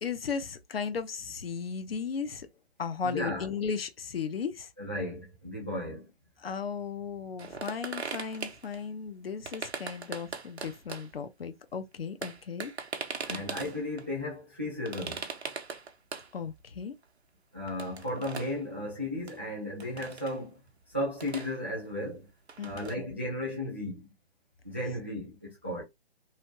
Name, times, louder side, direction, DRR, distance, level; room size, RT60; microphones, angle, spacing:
voice 1, 0.0-2.5 2.8-4.7 6.4-12.7 13.3-13.4 16.3-17.0 22.6-22.8, left 6 dB, 65° left, 0.7 m, -36 dB
voice 2, 3.0-3.5 4.8-6.1 13.3-15.3 17.5-20.6 20.9-22.3 22.6-24.1 24.6-25.8, left 1 dB, 10° right, 0.3 m, -35 dB
sound 1, 7.4-8.8 9.4-11.2 11.7-11.8 12.0-14.1 14.9-16.3 16.6-16.7 17.0-17.1 17.7-18.6 19.3-19.4 19.8-20.4 20.8-22.0 22.3-23.0, right 5 dB, 85° right, 0.7 m, -40 dB
3.1 x 2.4 x 2.9 m
figure-of-eight pair, 140°, 32 cm